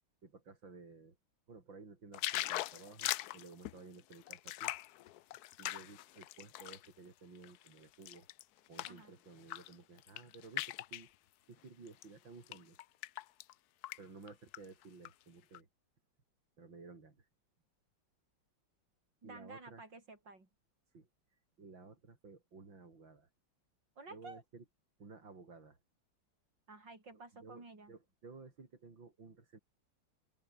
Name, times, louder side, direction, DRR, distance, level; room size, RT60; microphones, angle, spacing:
voice 1, 0.2-1.2 1.5-4.7 5.6-8.3 8.7-11.1 11.5-12.8 14.0-15.7 16.6-17.3 19.2-19.8 20.9-23.3 24.1-24.6 25.0-25.8 27.3-29.6, right 4 dB, 85° right, 4.7 m, -55 dB
sound 1, 2.1-6.9 7.4-9.0 9.4-9.7 10.0-11.1 11.9-12.0 12.5-13.5 13.8-14.0 14.3-15.1 15.5-15.6, left 15 dB, 70° left, 1.0 m, -41 dB
voice 2, 19.2-20.5 24.0-24.4 26.7-27.9, right 3 dB, 70° right, 6.5 m, -52 dB
open air
omnidirectional pair, 2.0 m